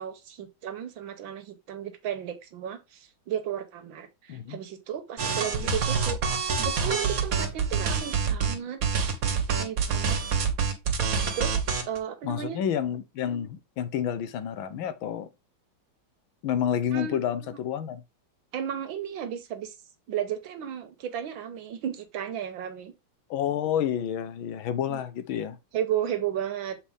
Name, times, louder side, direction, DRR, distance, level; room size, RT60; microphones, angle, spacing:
voice 1, 0.0-6.2 6.6-8.8 9.6-10.2 11.4-11.6 11.8-12.6 16.9-17.3 18.5-19.7 20.1-22.9 24.9-25.0 25.7-26.8, right 9 dB, 75° right, 1.7 m, -34 dB
sound 1, 5.2-8.5 8.8-12.0, right 6 dB, 50° right, 1.5 m, -26 dB
sound 2, 7.4-8.0 10.1-11.1, right 5 dB, 35° right, 1.4 m, -41 dB
voice 2, 12.2-15.3 16.4-18.0 23.3-25.6, left 9 dB, 80° left, 1.6 m, -29 dB
7.3 x 4.3 x 3.5 m
omnidirectional pair, 2.2 m